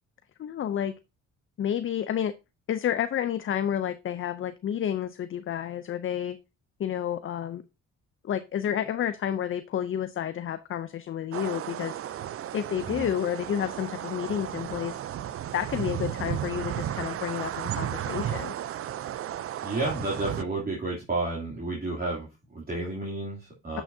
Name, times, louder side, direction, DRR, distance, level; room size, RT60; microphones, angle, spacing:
voice 1, 0.4-0.9 1.6-2.3 2.7-6.4 6.8-7.6 8.2-12.0 12.5-15.0 15.5-18.5, left 9 dB, 45° left, 12 dB, 0.5 m, -30 dB
sound 1, 11.3-20.4, right 11 dB, 50° right, 0.5 m, -34 dB
voice 2, 19.6-23.8, right 2 dB, 30° right, -5 dB, 2.8 m, -31 dB
10.0 x 6.0 x 2.7 m, 0.26 s
cardioid pair, 90°, 30 cm